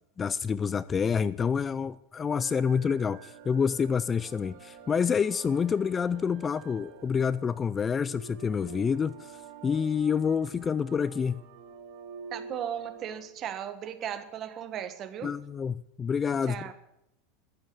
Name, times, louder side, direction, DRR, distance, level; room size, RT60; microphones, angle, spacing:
voice 1, 0.2-9.4 9.6-11.4 15.2-16.6, left 6 dB, 20° left, 0.4 m, -28 dB
sound 1, 2.3-13.3, right 5 dB, 60° right, 2.6 m, -48 dB
voice 2, 12.3-15.3 16.5-16.7, right 9 dB, 35° right, 1.5 m, -36 dB
12.0 x 8.9 x 9.1 m
supercardioid pair, 130°, 0 cm